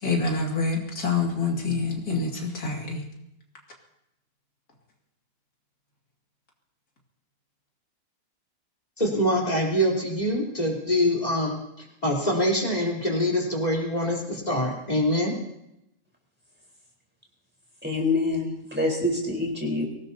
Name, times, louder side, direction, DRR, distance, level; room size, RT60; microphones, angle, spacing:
voice 1, 0.0-3.1, left 4 dB, 85° left, -1 dB, 3.2 m, -26 dB
voice 2, 9.0-11.6 12.0-15.3, equal, 25° left, -2 dB, 4.0 m, -24 dB
voice 3, 17.8-19.8, left 2 dB, 5° right, -1 dB, 4.3 m, -26 dB
24.5 x 18.5 x 2.9 m, 0.83 s
omnidirectional pair, 1.6 m